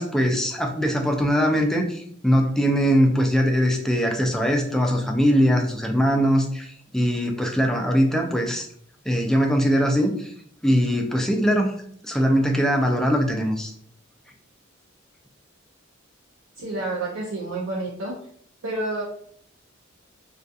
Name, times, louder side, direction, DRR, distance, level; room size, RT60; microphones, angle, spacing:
voice 1, 0.0-8.7 9.1-10.3 10.6-11.8 12.0-13.7, equal, ahead, 2 dB, 0.3 m, -21 dB
voice 2, 16.6-18.1 18.6-19.0, right 2 dB, 70° right, -4 dB, 0.5 m, -29 dB
2.3 x 2.3 x 2.6 m, 0.62 s
head